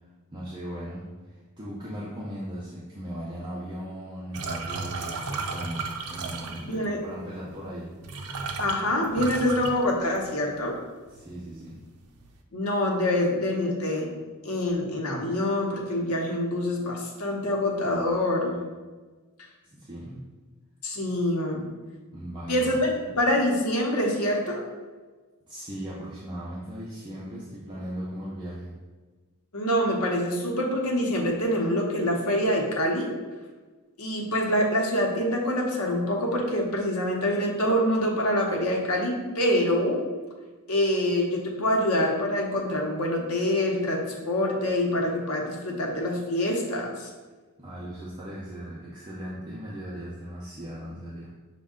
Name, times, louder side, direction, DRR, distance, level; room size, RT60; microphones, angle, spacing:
voice 1, 0.3-8.0 11.1-11.8 19.6-20.2 22.1-22.8 25.5-28.7 47.6-51.3, equal, 20° right, -7 dB, 0.5 m, -38 dB
sound 1, 4.3-6.9 7.7-7.8 8.0-10.5 10.8-11.3 11.6-12.3, right 4 dB, 85° right, 0.5 m, -34 dB
voice 2, 6.6-7.0 8.6-10.7 12.5-14.1 14.4-18.6 20.8-21.7 22.5-24.6 29.5-33.1 34.0-40.0 40.7-47.1, left 1 dB, 85° left, 0 dB, 0.8 m, -25 dB
5.2 x 2.2 x 3.6 m, 1.3 s
head